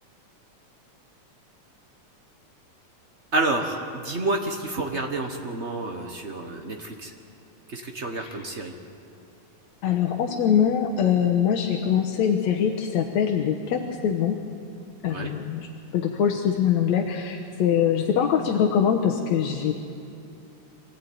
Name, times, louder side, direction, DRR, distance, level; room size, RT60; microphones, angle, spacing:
voice 1, 3.3-7.1 7.7-8.7 15.1-15.3, right 2 dB, 85° right, 3 dB, 0.6 m, -29 dB
voice 2, 9.8-14.4 15.0-15.7 15.9-19.7, left 8 dB, 70° left, 1 dB, 2.3 m, -23 dB
25.0 x 16.0 x 9.4 m, 2.7 s
omnidirectional pair, 3.5 m